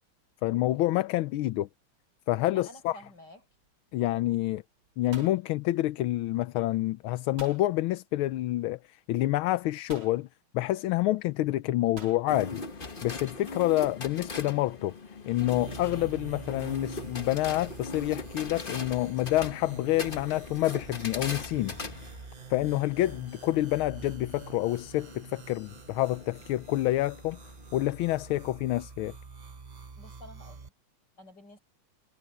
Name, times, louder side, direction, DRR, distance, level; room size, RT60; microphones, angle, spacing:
voice 1, 0.4-1.7 2.3-3.0 3.9-4.6 5.0-10.3 10.5-12.6 13.0-14.9 15.3-21.8 22.5-27.4 27.7-29.1, left 16 dB, 80° left, 1.5 m, -28 dB
voice 2, 2.5-3.4 30.0-30.7 31.2-31.6, equal, 55° left, 7.3 m, -50 dB
sound 1, 3.4-3.8 4.1-4.5 4.8-6.3 7.4-7.7 8.8-8.9 9.9-10.2 12.0-12.3, right 4 dB, 75° right, 4.6 m, -47 dB
sound 2, 12.3-28.5, left 3 dB, 25° left, 1.5 m, -42 dB
sound 3, 15.3-30.7, right 5 dB, 50° right, 0.4 m, -46 dB
omnidirectional pair, 2.3 m